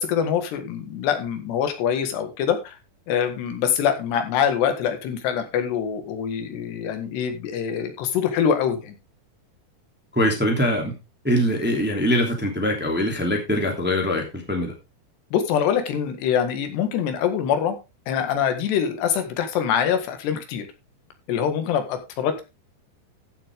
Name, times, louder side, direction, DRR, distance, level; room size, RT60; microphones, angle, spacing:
voice 1, 0.0-2.8 3.1-9.0 15.3-17.8 18.1-20.7 21.3-22.4, left 8 dB, 90° left, 8 dB, 3.9 m, -24 dB
voice 2, 10.1-10.9 11.2-14.7, equal, 5° right, 2 dB, 1.9 m, -23 dB
14.5 x 7.8 x 3.6 m, 0.26 s
omnidirectional pair, 4.7 m